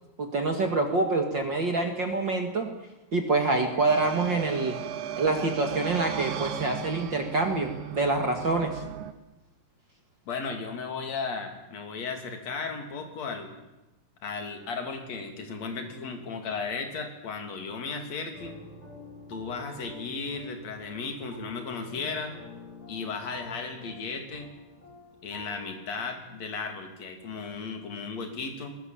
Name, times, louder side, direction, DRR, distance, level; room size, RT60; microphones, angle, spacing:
voice 1, 0.2-2.7 3.1-4.8 5.2-8.8, right 3 dB, 40° right, 4 dB, 1.8 m, -26 dB
sound 1, 3.9-9.1, right 10 dB, 85° right, 3.3 m, -36 dB
voice 2, 10.3-13.5 14.2-18.6 19.3-22.4 22.9-24.5 25.2-28.8, left 4 dB, 45° left, 5 dB, 3.7 m, -35 dB
sound 2, 18.3-25.8, left 2 dB, 10° left, 7.1 m, -48 dB
21.5 x 19.5 x 8.9 m, 1.0 s
omnidirectional pair, 4.5 m